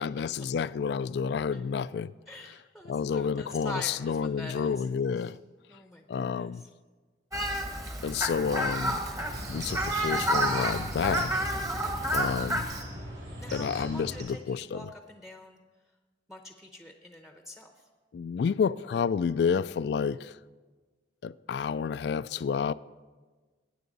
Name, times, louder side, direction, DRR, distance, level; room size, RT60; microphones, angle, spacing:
voice 1, 0.0-2.1 2.4-2.6 2.8-5.4 6.1-6.6 7.5-7.6 8.0-9.0 9.5-11.3 12.1-12.7 13.5-14.9 18.1-20.4 21.2-22.7, left 6 dB, 60° left, 0.3 m, -30 dB
voice 2, 2.3-4.8 5.7-6.5 11.8-12.2 13.4-15.6 16.3-17.7, left 1 dB, ahead, 0.8 m, -45 dB
Fowl, 7.3-12.8, right 1 dB, 20° right, 1.1 m, -30 dB
sound 1, 9.1-14.2, right 1 dB, 80° right, 5.3 m, -40 dB
21.0 x 9.3 x 4.0 m
head